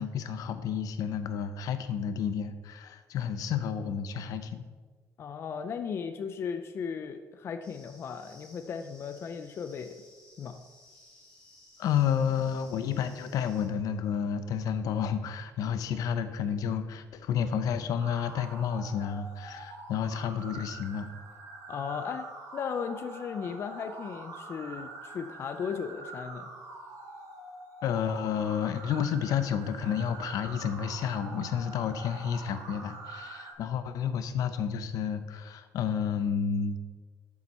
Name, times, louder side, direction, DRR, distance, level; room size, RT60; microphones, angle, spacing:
voice 1, 0.0-4.6 11.8-21.1 27.8-36.8, left 7 dB, 70° left, 10 dB, 0.8 m, -31 dB
voice 2, 5.2-9.9 10.4-10.6 21.7-22.3 22.5-26.5, left 6 dB, 40° left, 7 dB, 0.5 m, -36 dB
sound 1, 7.6-13.7, left 1 dB, 15° left, 2.7 m, -57 dB
sound 2, 18.0-33.5, right 2 dB, 60° right, 2.1 m, -45 dB
12.0 x 7.3 x 4.3 m, 1.4 s
cardioid pair, 160°, 6 cm